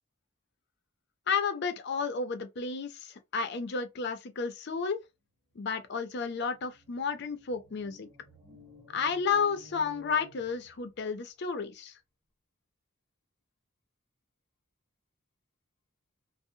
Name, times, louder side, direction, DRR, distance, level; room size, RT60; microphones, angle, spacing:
voice 1, 1.3-5.0 5.6-8.1 8.9-11.9, left 5 dB, 55° left, 0.5 m, -32 dB
sound 1, 5.7-5.8 6.1-11.2, right 1 dB, 20° right, 1.2 m, -55 dB
2.6 x 2.0 x 2.6 m
head